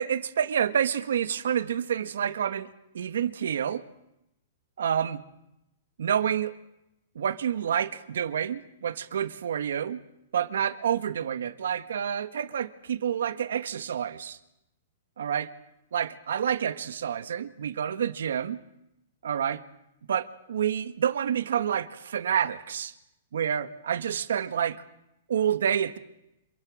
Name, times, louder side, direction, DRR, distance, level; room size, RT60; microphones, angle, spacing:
voice 1, 0.0-3.8 4.8-5.2 6.0-6.5 7.1-10.0 10.3-14.4 15.2-15.5 15.9-18.6 19.2-19.6 20.1-22.9 23.3-24.8 25.3-26.0, right 8 dB, 85° right, 12 dB, 1.6 m, -28 dB
27.0 x 24.0 x 6.4 m, 0.84 s
hypercardioid pair, 170°, 0 cm